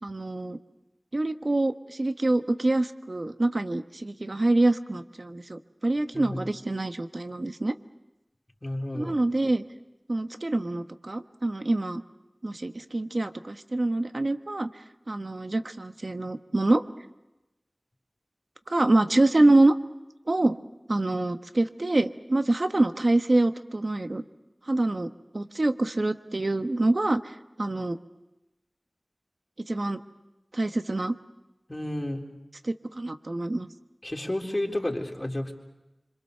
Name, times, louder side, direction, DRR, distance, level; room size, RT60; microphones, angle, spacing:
voice 1, 0.0-0.6 1.1-7.7 8.9-9.6 10.1-12.0 12.4-14.7 15.1-16.8 18.7-19.8 20.3-20.6 20.9-24.2 24.7-25.1 25.3-28.0 29.7-30.0 30.5-31.2 32.6-33.7, right 2 dB, 65° right, 8 dB, 1.2 m, -25 dB
voice 2, 8.6-9.2 31.7-32.2 34.0-35.5, left 1 dB, 35° left, 0 dB, 3.8 m, -31 dB
26.5 x 26.0 x 6.7 m, 0.97 s
wide cardioid pair, 45°, 0 cm